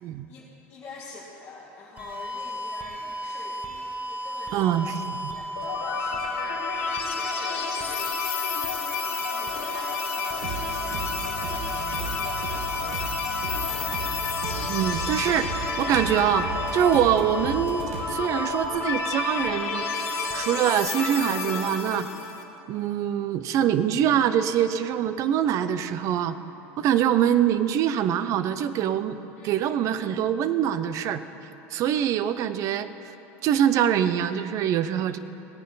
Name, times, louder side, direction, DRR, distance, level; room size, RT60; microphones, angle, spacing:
voice 1, 0.3-3.7 4.1-14.0 29.4-29.6, left 3 dB, 20° left, -8 dB, 2.1 m, -46 dB
sound 1, 2.0-20.8, right 1 dB, 20° right, 1.4 m, -34 dB
voice 2, 4.5-4.9 14.7-16.5 16.7-19.9 20.3-22.1 22.7-26.4 26.8-29.2 29.4-31.2 31.7-32.9 33.4-35.2, right 10 dB, 50° right, 13 dB, 0.6 m, -24 dB
sound 2, 5.6-22.4, left 6 dB, 90° left, 1.2 m, -31 dB
sound 3, 10.4-18.0, right 4 dB, 75° right, 1.4 m, -36 dB
17.5 x 9.3 x 4.0 m, 3.0 s
supercardioid pair, 125°, 7 cm